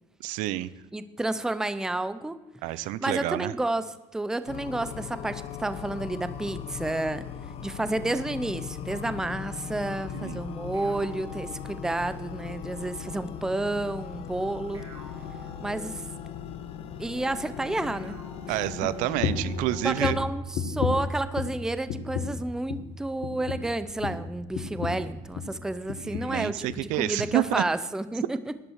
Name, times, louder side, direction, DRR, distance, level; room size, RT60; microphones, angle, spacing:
voice 1, 0.2-0.7 2.6-3.5 10.1-10.4 18.5-20.2 26.1-27.6, right 15 dB, 75° right, 17 dB, 0.7 m, -29 dB
voice 2, 0.9-2.4 3.0-7.2 7.6-14.8 15.6-16.0 17.0-18.2 18.5-18.6 19.8-28.5, right 2 dB, 5° right, 13 dB, 0.5 m, -30 dB
sound 1, 4.5-20.2, left 8 dB, 45° left, 1.0 m, -39 dB
sound 2, 10.7-12.4 14.7-16.3 17.9-19.4, right 4 dB, 25° right, 3.4 m, -51 dB
sound 3, 19.2-19.6 20.0-21.6 21.9-22.4 22.7-22.9 23.2-25.6 25.9-26.4 26.7-26.9 27.2-27.3, left 6 dB, 65° left, 1.7 m, -32 dB
12.5 x 11.0 x 6.4 m, 1.0 s
cardioid pair, 155°, 13 cm